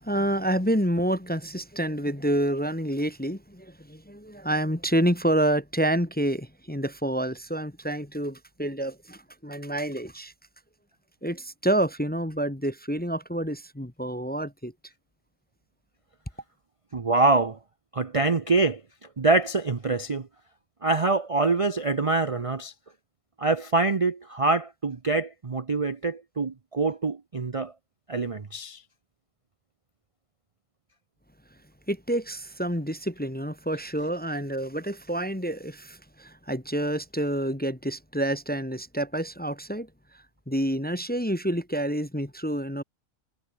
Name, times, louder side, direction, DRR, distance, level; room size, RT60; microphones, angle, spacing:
voice 1, 0.0-10.3 11.2-14.7 31.9-39.9 40.5-42.8, right 1 dB, 5° left, 0.9 m, -28 dB
voice 2, 16.9-17.6 17.9-18.8 19.2-20.3 20.8-22.7 23.4-27.7 28.1-28.8, right 3 dB, 30° right, 0.7 m, -25 dB
omnidirectional pair, 1.5 m